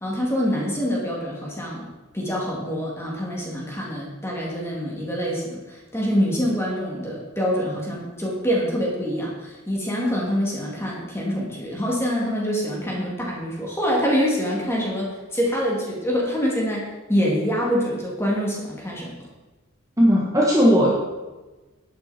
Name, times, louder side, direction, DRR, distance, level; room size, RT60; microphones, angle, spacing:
voice 1, 0.0-1.9 2.1-19.1, equal, 10° left, -3 dB, 2.5 m, -25 dB
voice 2, 20.0-20.9, equal, 15° right, -5 dB, 1.4 m, -17 dB
11.0 x 8.9 x 4.4 m, 1.2 s
head